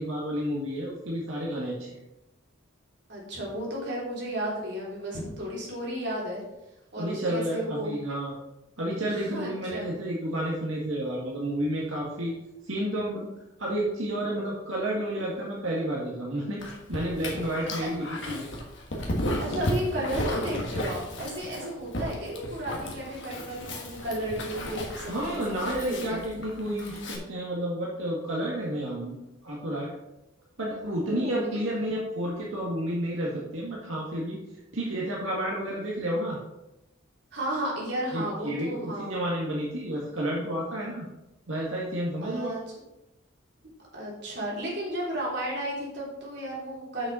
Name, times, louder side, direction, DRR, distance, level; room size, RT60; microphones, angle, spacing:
voice 1, 0.0-2.0 7.0-8.4 8.8-12.3 12.7-13.3 13.6-16.6 16.9-18.5 25.1-29.2 29.4-29.9 30.6-34.4 34.7-36.4 38.1-41.0 41.5-42.5, right 1 dB, 85° right, -4 dB, 1.8 m, -31 dB
voice 2, 3.1-6.4 6.9-7.9 9.1-9.9 19.4-25.4 25.7-26.2 31.1-31.6 37.3-39.1 42.2-42.6 43.9-47.1, right 1 dB, 55° right, -5 dB, 3.4 m, -33 dB
Dog, 16.6-27.2, left 1 dB, 60° left, 1.6 m, -34 dB
7.0 x 6.4 x 5.5 m, 0.93 s
head